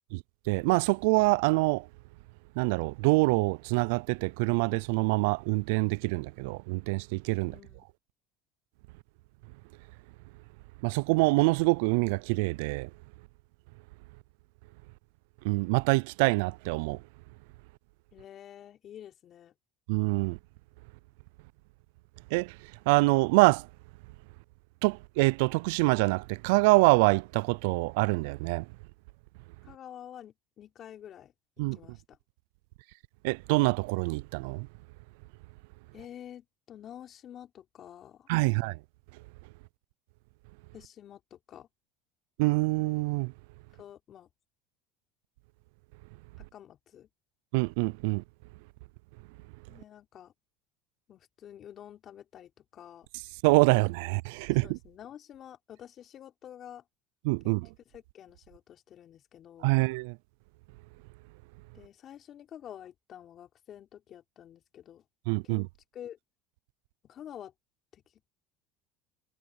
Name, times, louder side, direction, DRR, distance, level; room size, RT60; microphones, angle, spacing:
voice 1, 0.1-1.9 2.6-7.5 10.8-12.9 15.4-17.0 19.9-20.4 22.3-22.6 22.9-23.7 24.8-28.7 31.6-31.8 33.2-34.7 38.3-38.8 42.4-43.3 47.5-48.2 53.4-54.8 57.2-57.7 59.6-60.2 65.3-65.7, right 26 dB, 75° right, 0.4 m, -25 dB
voice 2, 7.5-7.9 18.1-19.5 29.6-32.2 35.9-38.3 40.7-41.7 43.8-44.3 46.4-47.1 49.7-50.3 51.1-53.1 53.7-53.9 54.6-56.8 57.4-57.6 57.9-59.7 61.7-65.0 65.4-65.7 65.9-66.2 67.0-67.5 67.9-68.0, left 10 dB, 45° left, 4.1 m, -49 dB
supercardioid pair, 110°, 0 cm